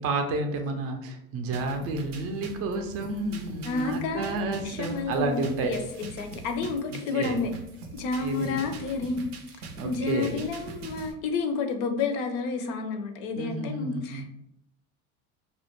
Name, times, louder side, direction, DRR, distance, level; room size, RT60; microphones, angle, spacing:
voice 1, 0.0-5.7 6.9-7.4 8.2-8.6 9.8-10.3 13.3-14.2, right 3 dB, 35° right, 4 dB, 0.5 m, -30 dB
sound 1, 1.5-11.1, right 3 dB, 85° right, 0.6 m, -43 dB
voice 2, 3.6-7.5 7.9-9.3 9.8-14.4, left 4 dB, 50° left, 6 dB, 0.5 m, -30 dB
2.3 x 2.1 x 2.9 m, 0.78 s
hypercardioid pair, 90°, 44 cm